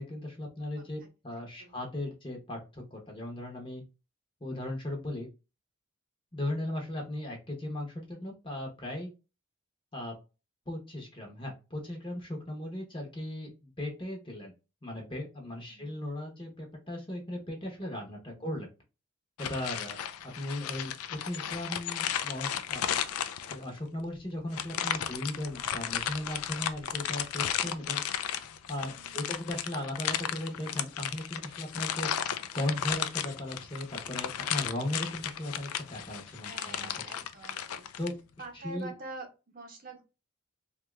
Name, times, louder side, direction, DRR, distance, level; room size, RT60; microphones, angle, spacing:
voice 1, 0.0-3.8 4.4-5.3 6.3-9.1 9.9-10.2 10.7-14.5 14.8-18.7 19.4-20.0 20.2-22.8 23.5-28.0 28.7-32.1 32.5-36.9 38.0-38.1 38.6-38.9, left 1 dB, 25° left, 0 dB, 0.8 m, -37 dB
voice 2, 0.6-1.9 15.7-15.9 18.3-18.5 19.7-20.1 29.0-29.3 36.4-37.9 38.4-40.0, right 2 dB, 40° right, 1 dB, 0.8 m, -47 dB
sound 1, 19.4-23.8 24.5-38.1, left 9 dB, 80° left, 0.4 m, -34 dB
2.8 x 2.3 x 3.1 m, 0.30 s
head